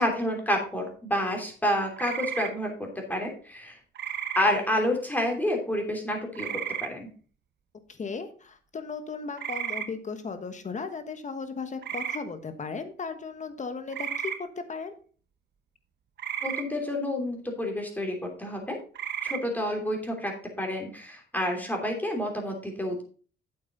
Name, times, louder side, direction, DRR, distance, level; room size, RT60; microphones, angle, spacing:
voice 1, 0.0-3.8 4.3-7.1 16.4-18.8 19.2-20.3 20.6-23.0, left 1 dB, 10° left, 1 dB, 3.2 m, -29 dB
sound 1, 2.0-2.5 4.0-4.4 6.3-6.9 9.4-9.9 11.8-12.2 13.9-14.4 16.2-16.6 18.9-19.4, right 9 dB, 60° right, 1.0 m, -33 dB
voice 2, 7.9-14.9, left 4 dB, 35° left, 9 dB, 1.3 m, -36 dB
8.3 x 8.0 x 4.0 m, 0.40 s
cardioid pair, 90°, 20 cm